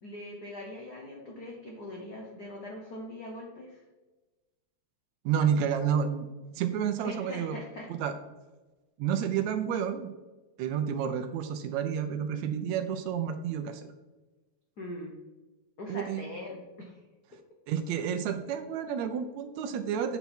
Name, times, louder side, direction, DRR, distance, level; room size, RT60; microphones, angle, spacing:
voice 1, 0.0-3.8 7.0-7.9 14.8-15.1 15.8-17.0, left 1 dB, 80° left, 0 dB, 0.8 m, -41 dB
voice 2, 5.3-6.3 6.6-7.6 7.9-8.1 9.0-10.1 10.6-13.9 15.9-16.3 17.7-20.2, right 8 dB, 75° right, 8 dB, 1.8 m, -30 dB
8.0 x 5.8 x 4.3 m, 1.2 s
omnidirectional pair, 3.5 m